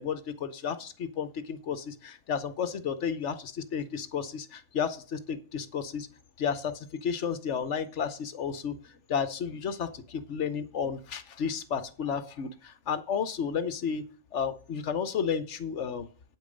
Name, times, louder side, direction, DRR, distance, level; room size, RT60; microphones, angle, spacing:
voice 1, 0.0-6.1 6.4-8.8 9.1-14.0 14.3-16.1, left 7 dB, 60° left, 12 dB, 1.2 m, -32 dB
8.7 x 8.5 x 5.1 m, 0.40 s
omnidirectional pair, 1.5 m